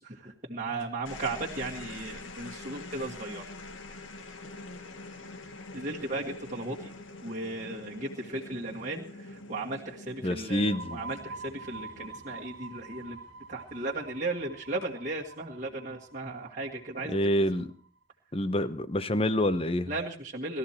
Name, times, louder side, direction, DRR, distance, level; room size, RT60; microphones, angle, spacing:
voice 1, 0.0-3.4 5.7-6.9 7.2-9.0 9.3-13.2 13.5-17.2 19.9-20.6, right 2 dB, 35° right, 1.8 m, -36 dB
sound 1, 0.8-13.4 14.6-15.1, left 2 dB, 70° left, 1.6 m, -45 dB
voice 2, 10.2-11.0 17.1-17.7 18.3-19.9, left 1 dB, 25° left, 0.9 m, -27 dB
sound 2, 10.4-17.9, right 3 dB, 55° right, 1.4 m, -47 dB
20.0 x 14.0 x 4.4 m
head